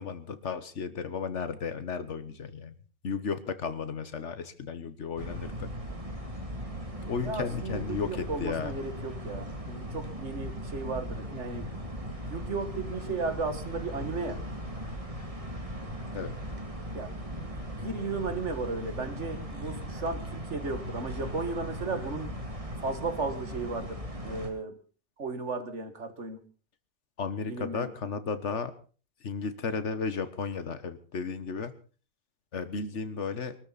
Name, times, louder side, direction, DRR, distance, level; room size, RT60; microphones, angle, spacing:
voice 1, 0.0-2.7 3.0-5.7 7.0-8.7 16.1-16.3 27.2-28.7 29.2-31.7 32.5-33.6, left 5 dB, 80° left, 12 dB, 1.6 m, -34 dB
sound 1, 5.2-24.5, equal, 30° right, 2.7 m, -38 dB
voice 2, 7.2-11.7 12.2-14.4 16.9-17.1 17.4-22.3 22.8-24.0 24.2-24.8 25.2-26.4 27.5-27.9, right 3 dB, 80° right, 9 dB, 2.2 m, -35 dB
23.5 x 13.0 x 4.1 m, 0.38 s
omnidirectional pair, 1.2 m